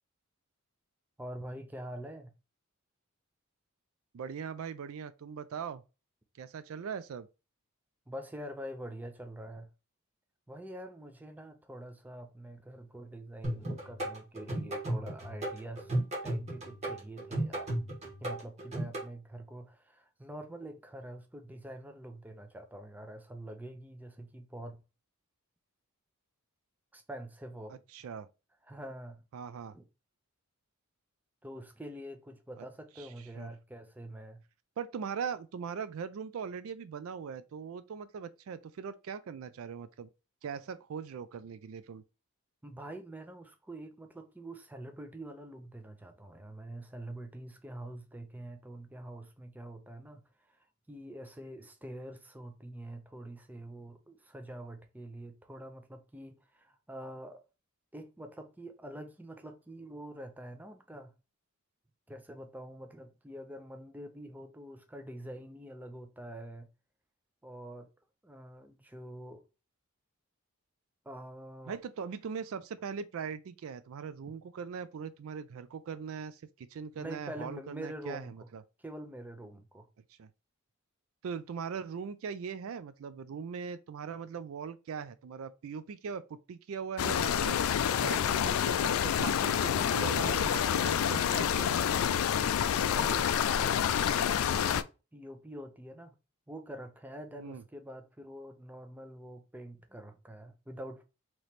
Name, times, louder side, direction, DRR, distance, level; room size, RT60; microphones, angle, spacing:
voice 1, 1.2-2.3 8.1-9.7 10.5-15.9 16.2-17.7 18.2-24.8 26.9-27.8 28.7-29.2 29.7-29.8 31.4-34.4 42.6-50.2 50.9-57.4 57.9-61.1 62.1-66.7 67.4-67.9 68.2-69.4 71.1-71.8 77.0-78.5 78.8-79.9 92.8-96.1 96.5-101.0, right 1 dB, 10° right, 0.5 m, -45 dB
voice 2, 4.1-5.8 6.4-7.3 27.7-28.3 29.3-29.8 32.6-32.7 33.0-33.5 34.8-40.1 40.4-42.0 71.7-78.6 80.2-80.3 81.2-87.6 88.0-92.1 97.4-97.6, right 6 dB, 65° right, 0.3 m, -40 dB
sound 1, 13.4-19.1, right 1 dB, 30° right, 1.3 m, -35 dB
sound 2, 87.0-94.8, left 8 dB, 70° left, 0.3 m, -28 dB
3.2 x 3.0 x 4.1 m
head